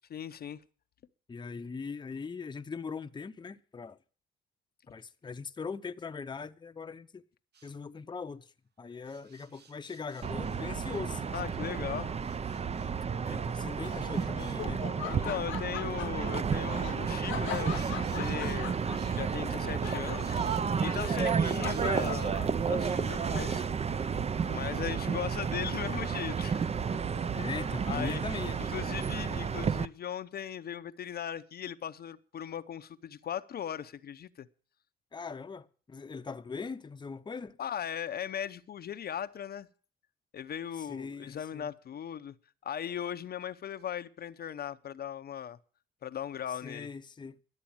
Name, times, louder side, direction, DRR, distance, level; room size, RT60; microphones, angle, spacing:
voice 1, 0.1-0.6 11.3-12.2 14.3-14.4 15.1-18.7 19.2-20.4 20.8-24.1 24.5-26.8 27.9-28.2 28.6-34.5 37.6-39.7 40.3-42.3 42.6-45.6 46.0-46.9, left 9 dB, 50° left, 0.7 m, -38 dB
voice 2, 1.3-4.0 4.9-7.2 7.6-8.5 8.8-11.5 13.2-14.9 18.2-18.6 27.3-28.6 35.1-37.6 40.8-41.7 46.6-47.4, left 5 dB, 20° left, 0.7 m, -40 dB
sound 1, 7.5-7.7 9.0-11.0 12.2-12.9 13.8-14.6 17.5-18.7 18.9-19.2 20.1-22.4, right 6 dB, 55° right, 1.3 m, -55 dB
sound 2, 10.2-29.8, right 6 dB, 30° right, 0.6 m, -32 dB
Laughter, 13.8-23.8, left 14 dB, 85° left, 0.7 m, -42 dB
12.0 x 8.2 x 8.6 m
cardioid pair, 90°, 20 cm